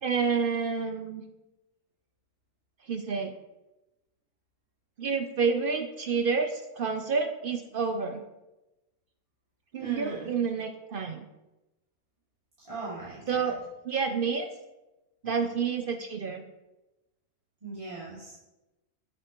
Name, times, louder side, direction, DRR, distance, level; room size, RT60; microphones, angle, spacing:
voice 1, 0.0-1.2 2.9-3.3 5.0-8.2 9.7-11.3 13.3-13.6 13.8-14.5 15.2-16.4, right 5 dB, 60° right, 6 dB, 0.5 m, -29 dB
voice 2, 9.8-10.3 12.6-13.4 17.6-18.3, right 3 dB, 20° right, -11 dB, 2.3 m, -39 dB
8.0 x 7.7 x 3.0 m, 1.0 s
omnidirectional pair, 1.5 m